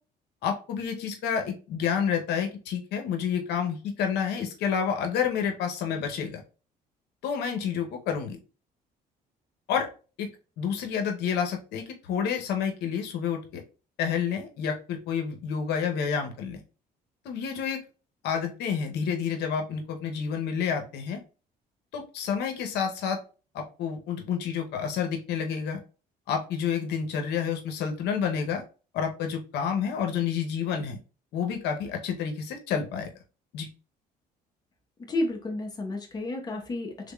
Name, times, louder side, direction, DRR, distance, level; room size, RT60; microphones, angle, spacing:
voice 1, 0.4-6.4 7.2-8.4 9.7-9.9 10.2-10.3 10.6-13.6 14.0-16.6 17.2-17.8 18.2-21.2 21.9-23.2 23.5-25.8 26.3-28.6 28.9-31.0 31.3-33.1 33.5-33.7, left 7 dB, 80° left, 4 dB, 0.8 m, -29 dB
voice 2, 35.1-37.1, left 2 dB, 25° left, 2 dB, 1.0 m, -31 dB
3.6 x 3.4 x 2.3 m, 0.34 s
cardioid pair, 110°, 17 cm